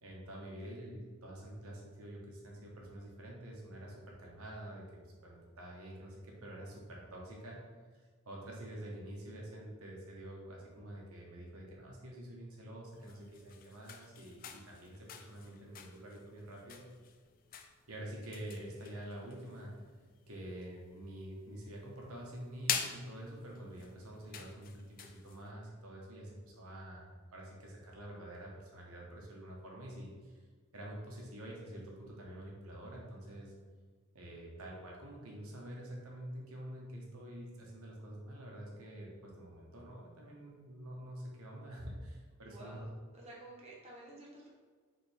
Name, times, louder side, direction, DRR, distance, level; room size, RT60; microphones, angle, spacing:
voice 1, 0.0-4.8 5.2-7.6 7.9-16.8 17.9-19.7 20.3-30.4 30.7-33.5 34.1-42.8, right 1 dB, 85° right, -2 dB, 1.1 m, -47 dB
sound 1, 12.9-25.5, left 8 dB, 40° left, 0.4 m, -46 dB
voice 2, 42.4-44.5, right 1 dB, 30° right, -3 dB, 0.8 m, -52 dB
4.4 x 3.5 x 3.4 m, 1.5 s
head